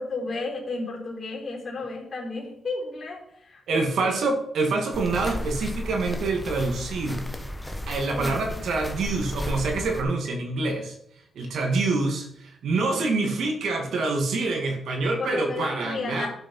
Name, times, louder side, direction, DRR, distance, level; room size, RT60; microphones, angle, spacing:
voice 1, 0.0-4.2 8.1-8.4 15.0-16.3, left 3 dB, 35° left, -4 dB, 4.1 m, -33 dB
voice 2, 3.7-7.2 7.9-10.9 11.4-16.3, right 3 dB, 75° right, 3 dB, 2.3 m, -26 dB
sound 1, 4.9-10.0, left 1 dB, 5° left, 1.4 m, -34 dB
12.5 x 7.1 x 5.6 m, 0.72 s
wide cardioid pair, 140°, 0 cm